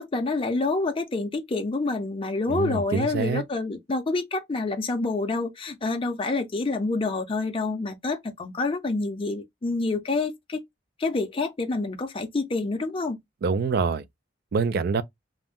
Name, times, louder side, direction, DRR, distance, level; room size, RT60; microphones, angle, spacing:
voice 1, 0.0-10.6 11.0-13.2, left 3 dB, 30° left, 0.5 m, -27 dB
voice 2, 2.5-3.4 13.4-14.0 14.5-15.0, right 5 dB, 55° right, 0.3 m, -25 dB
2.5 x 2.1 x 3.5 m
head